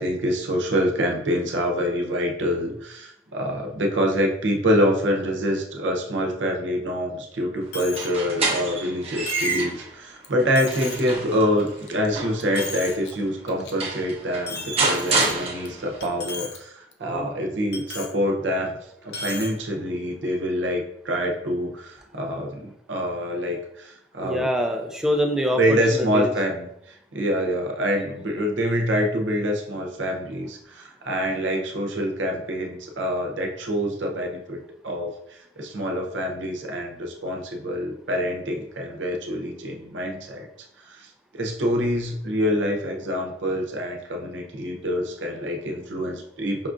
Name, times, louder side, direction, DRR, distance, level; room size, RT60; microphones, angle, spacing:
voice 1, 0.0-18.8 19.0-24.5 25.6-40.5 40.8-46.7, equal, 85° right, 1 dB, 0.7 m, -26 dB
Coin (dropping), 7.7-8.1 8.5-8.6 9.3-9.7 10.2-10.3 10.6-11.1 11.6-12.1 12.4-13.1 13.5-13.7 14.5-15.7 16.0-16.6 16.9-17.0 17.7-18.1 19.1-19.5, left 4 dB, 70° left, 0.5 m, -36 dB
sound 1, 7.8-9.9 10.4-13.0 13.5-13.6 13.8-16.0, right 3 dB, 35° right, 0.7 m, -28 dB
voice 2, 24.2-26.3, equal, 5° right, 4 dB, 0.3 m, -25 dB
5.3 x 2.4 x 2.5 m, 0.78 s
head